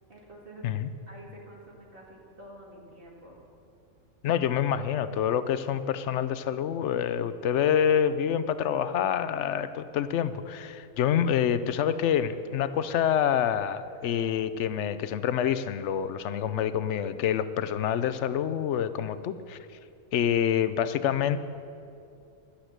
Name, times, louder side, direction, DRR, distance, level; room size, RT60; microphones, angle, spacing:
voice 1, 0.1-0.7 1.1-3.4, right 1 dB, 45° right, -3 dB, 2.3 m, -48 dB
voice 2, 4.2-19.6 20.1-21.4, left 9 dB, 70° left, 13 dB, 0.9 m, -27 dB
11.5 x 9.0 x 7.9 m, 2.5 s
omnidirectional pair, 1.3 m